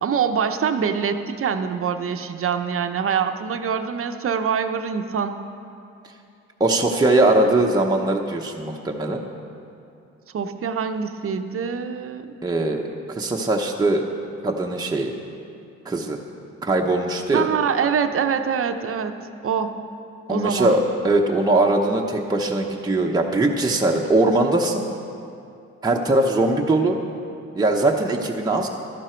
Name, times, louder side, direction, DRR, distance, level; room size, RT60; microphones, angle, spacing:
voice 1, 0.0-5.4 10.3-12.4 17.3-19.2 19.4-19.8 20.3-20.8, right 7 dB, 45° right, 8 dB, 0.8 m, -24 dB
voice 2, 6.6-9.2 12.4-12.8 13.2-14.0 14.4-15.1 15.8-16.2 16.6-17.5 20.3-24.8 25.8-27.0 27.5-28.7, right 2 dB, 15° right, 0 dB, 0.9 m, -21 dB
13.0 x 11.5 x 4.5 m, 2.6 s
cardioid pair, 90°, 30 cm